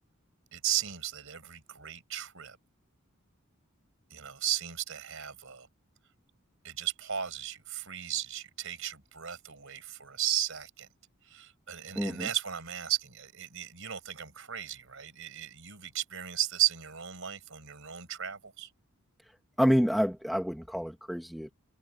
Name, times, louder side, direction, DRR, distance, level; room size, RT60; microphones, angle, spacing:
voice 1, 0.5-2.6 4.1-5.7 6.6-10.9 11.2-18.7, right 11 dB, 65° right, 5.3 m, -35 dB
voice 2, 11.9-12.3 19.6-21.5, equal, ahead, 1.3 m, -28 dB
head